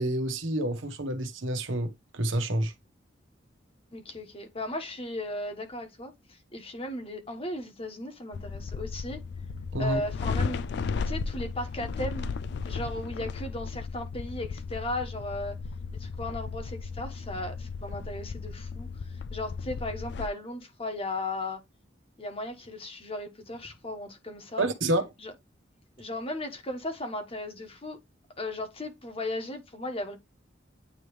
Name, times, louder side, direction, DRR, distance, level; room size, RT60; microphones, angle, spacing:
voice 1, 0.0-2.7 9.7-10.0 24.6-25.1, right 1 dB, 85° right, 1.2 m, -28 dB
voice 2, 3.9-9.2 9.8-10.6 11.0-12.3 12.6-15.6 15.9-21.6 22.2-24.7 25.2-25.3 26.0-28.0 28.4-30.2, left 1 dB, 30° left, 1.4 m, -36 dB
sound 1, 8.3-20.3, left 5 dB, 60° left, 0.3 m, -35 dB
9.2 x 3.1 x 3.2 m
head